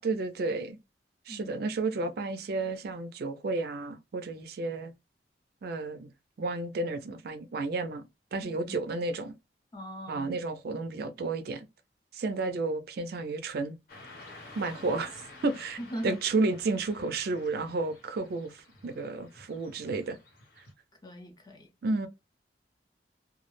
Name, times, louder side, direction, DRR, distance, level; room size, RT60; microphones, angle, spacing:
voice 1, 0.0-0.8 1.3-4.9 5.6-6.1 6.4-8.0 8.3-9.3 10.1-11.7 12.1-13.8 14.6-20.2 21.8-22.1, right 3 dB, 60° right, 0.4 m, -32 dB
voice 2, 8.4-8.8 9.7-10.3 15.8-16.2 21.0-21.7, equal, 25° left, 0.6 m, -40 dB
Car passing by / Traffic noise roadway noise, 13.9-20.7, left 2 dB, 60° left, 1.0 m, -51 dB
2.2 x 2.0 x 3.0 m
head